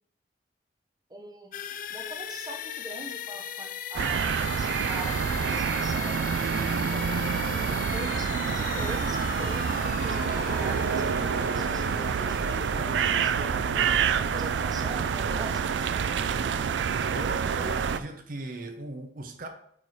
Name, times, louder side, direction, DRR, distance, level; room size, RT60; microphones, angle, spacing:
voice 1, 1.1-1.6 1.9-6.2 6.9-13.9 14.3-15.9, right 2 dB, 25° right, 0.8 m, -42 dB
sound 1, 1.5-15.2, left 8 dB, 50° left, 0.3 m, -38 dB
sound 2, 3.9-18.0, right 6 dB, 85° right, 0.4 m, -27 dB
voice 2, 17.0-19.5, right 2 dB, 55° right, 0.7 m, -38 dB
8.9 x 3.2 x 4.2 m
head